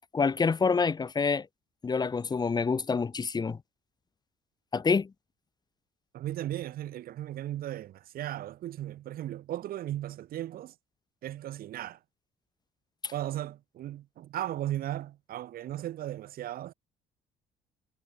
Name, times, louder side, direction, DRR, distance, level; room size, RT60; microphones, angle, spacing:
voice 1, 0.1-1.5 1.8-3.6 4.7-5.1 13.0-13.1, left 5 dB, 25° left, 1.0 m, -27 dB
voice 2, 6.1-10.7 11.2-12.0 13.1-16.7, right 13 dB, 60° right, 1.0 m, -36 dB
cardioid pair, 110°, 17 cm